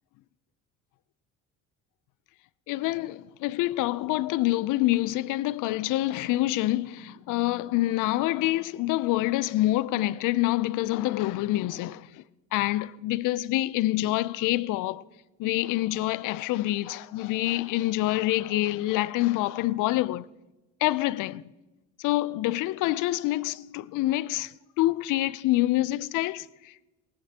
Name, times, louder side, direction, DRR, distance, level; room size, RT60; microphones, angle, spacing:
voice 1, 2.7-12.2 12.5-15.0 15.4-20.3 20.8-21.4 22.0-26.8, left 17 dB, 65° left, 0.6 m, -26 dB
18.0 x 13.5 x 2.9 m
hypercardioid pair, 70°, 35 cm